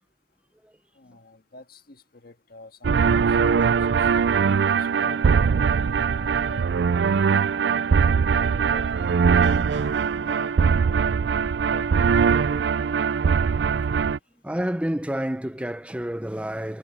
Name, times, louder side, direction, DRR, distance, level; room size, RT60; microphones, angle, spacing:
voice 1, 1.0-3.4 3.7-4.1 4.7-7.0 8.3-11.2 11.6-12.1, left 3 dB, 60° left, 1.7 m, -47 dB
sound 1, 2.8-14.2, right 6 dB, 70° right, 0.4 m, -21 dB
voice 2, 14.4-16.8, equal, 5° right, 0.8 m, -29 dB
head